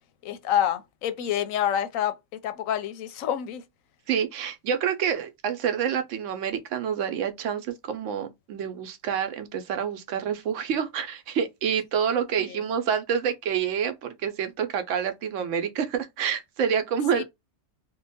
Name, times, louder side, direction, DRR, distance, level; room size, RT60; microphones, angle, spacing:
voice 1, 0.2-2.2 2.4-3.6 12.5-12.6 17.1-17.2, left 10 dB, 90° left, 1.0 m, -27 dB
voice 2, 4.1-17.2, right 8 dB, 75° right, 0.9 m, -28 dB
2.8 x 2.2 x 4.0 m
omnidirectional pair, 1.4 m